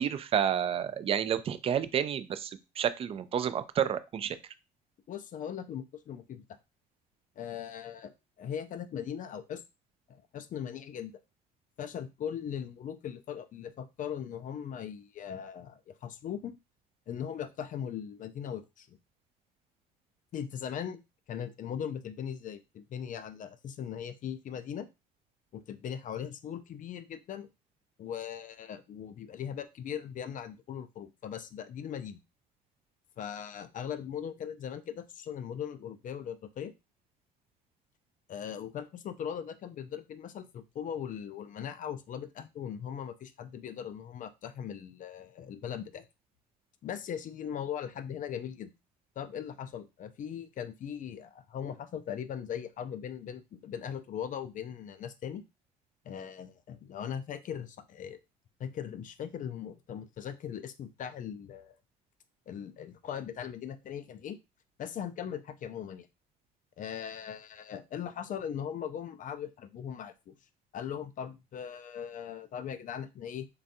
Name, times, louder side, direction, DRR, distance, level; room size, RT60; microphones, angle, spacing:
voice 1, 0.0-4.4, right 9 dB, 30° right, 13 dB, 0.3 m, -30 dB
voice 2, 5.1-6.6 7.4-9.6 10.1-11.1 11.8-16.5 17.1-19.0 20.3-21.0 21.3-24.9 25.5-27.5 28.0-32.2 33.2-36.7 38.3-46.0 46.8-48.7 49.2-55.4 56.0-58.2 58.6-61.8 62.5-64.4 64.8-66.1 66.8-70.4 70.7-73.5, left 8 dB, 40° left, 11 dB, 0.4 m, -39 dB
3.2 x 2.3 x 2.6 m, 0.25 s
hypercardioid pair, 65°, 21 cm